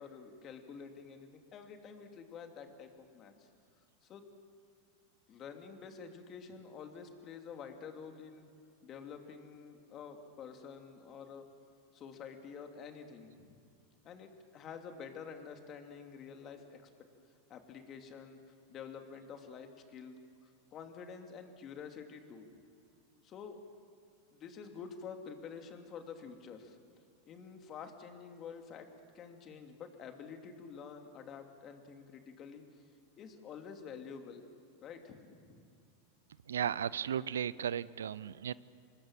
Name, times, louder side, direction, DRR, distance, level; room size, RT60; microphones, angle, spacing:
voice 1, 0.0-3.5 4.0-4.2 5.3-8.5 8.8-11.5 11.9-13.6 14.0-16.8 17.5-18.4 18.7-22.6 23.2-23.6 24.3-26.8 27.2-28.9 29.1-32.6 33.2-34.5 34.8-35.7, left 6 dB, 40° left, 5 dB, 2.8 m, -49 dB
voice 2, 36.5-38.5, right 9 dB, 85° right, 20 dB, 0.5 m, -35 dB
26.5 x 20.0 x 7.6 m, 2.3 s
hypercardioid pair, 105°, 0 cm